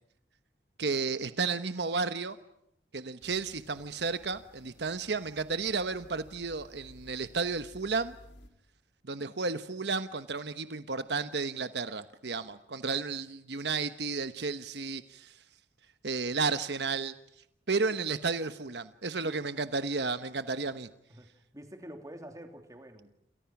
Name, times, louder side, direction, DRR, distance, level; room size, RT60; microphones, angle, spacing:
voice 1, 0.8-2.4 2.9-8.2 9.0-15.4 16.0-17.1 17.7-20.9, right 4 dB, 70° right, 10 dB, 1.1 m, -32 dB
sound 1, 3.2-8.5, equal, 80° left, 3.9 m, -56 dB
voice 2, 21.1-23.1, equal, 20° right, 5 dB, 3.2 m, -47 dB
28.5 x 28.5 x 6.0 m, 0.78 s
head